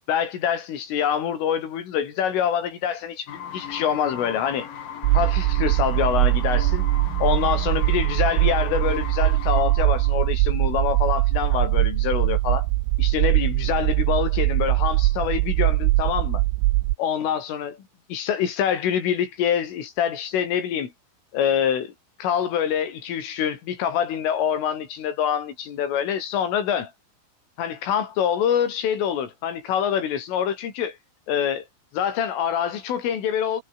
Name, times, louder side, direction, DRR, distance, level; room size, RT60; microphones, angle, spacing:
voice 1, 0.1-4.7 5.1-6.9 7.2-12.7 13.0-16.4 17.0-17.8 18.1-20.9 21.3-21.9 22.2-26.9 27.6-31.0 31.3-31.7 31.9-33.6, left 9 dB, 80° left, 6.3 m, -25 dB
sound 1, 3.3-10.2, left 8 dB, 50° left, 3.9 m, -37 dB
sound 2, 5.0-17.0, right 20 dB, 85° right, 3.0 m, -21 dB
omnidirectional pair, 5.7 m